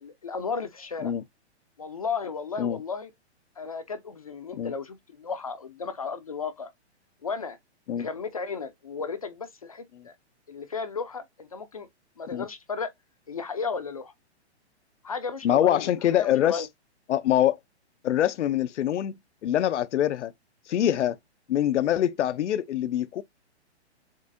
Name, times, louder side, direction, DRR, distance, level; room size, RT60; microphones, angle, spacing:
voice 1, 0.0-1.1 1.8-3.1 3.6-6.7 7.2-7.6 8.0-10.1 10.5-11.9 12.2-12.9 13.3-14.1 15.0-15.9 16.2-16.7, left 5 dB, 35° left, 0.4 m, -34 dB
voice 2, 15.4-16.7 17.1-17.6 18.0-19.1 19.4-20.3 20.7-21.2 21.5-23.2, left 11 dB, 85° left, 0.6 m, -24 dB
7.2 x 2.4 x 2.5 m
hypercardioid pair, 170°, 34 cm